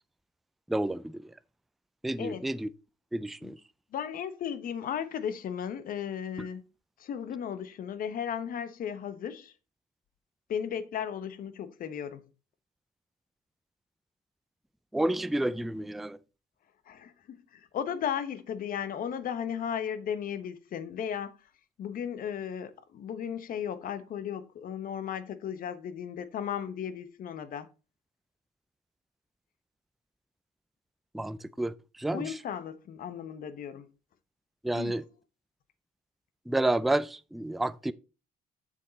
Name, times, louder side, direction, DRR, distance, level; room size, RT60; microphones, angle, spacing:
voice 1, 0.7-1.3 2.0-2.7 3.1-3.6 6.4-6.5 14.9-16.2 31.1-32.4 34.6-35.0 36.5-37.9, right 1 dB, ahead, 0.3 m, -30 dB
voice 2, 3.9-6.6 7.0-9.5 10.5-12.2 16.9-21.3 21.8-27.7 32.1-33.9 34.7-35.0, left 8 dB, 55° left, 1.0 m, -35 dB
7.3 x 6.5 x 4.0 m
cardioid pair, 110°, 17 cm